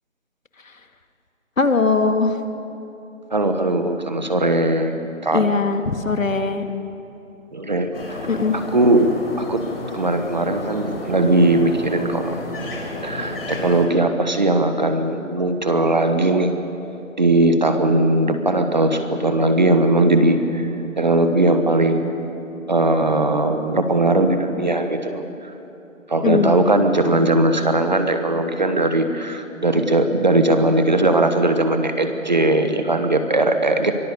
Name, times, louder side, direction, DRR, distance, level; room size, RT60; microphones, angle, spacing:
voice 1, 1.6-2.4 5.3-6.6 8.3-8.6 26.2-26.9, left 4 dB, 75° left, 7 dB, 2.1 m, -20 dB
voice 2, 3.3-4.9 5.2-5.4 7.5-7.9 8.5-9.0 9.4-9.6 9.9-12.4 13.0-16.5 17.2-20.7 21.0-22.1 22.7-25.5 26.1-33.9, right 2 dB, 35° right, 8 dB, 1.2 m, -19 dB
sound 1, 7.9-13.9, left 2 dB, 45° left, 4.1 m, -32 dB
24.0 x 20.0 x 6.8 m, 2.9 s
hypercardioid pair, 175°, 40 cm